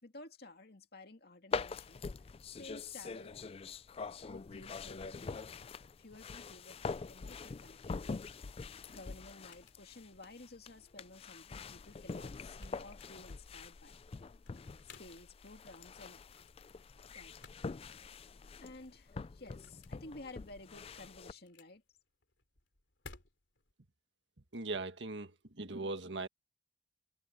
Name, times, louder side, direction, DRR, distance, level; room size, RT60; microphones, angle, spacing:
voice 1, 0.0-2.0 2.6-3.4 4.2-5.6 6.0-8.3 8.9-14.0 14.8-16.2 17.1-17.3 18.6-21.8, left 2 dB, 60° left, 2.2 m, -53 dB
sound 1, 1.5-21.3, left 4 dB, 30° left, 0.4 m, -45 dB
sound 2, 9.3-23.7, left 3 dB, 80° left, 3.0 m, -61 dB
voice 2, 24.5-25.3 25.6-26.3, right 3 dB, 75° right, 1.7 m, -39 dB
head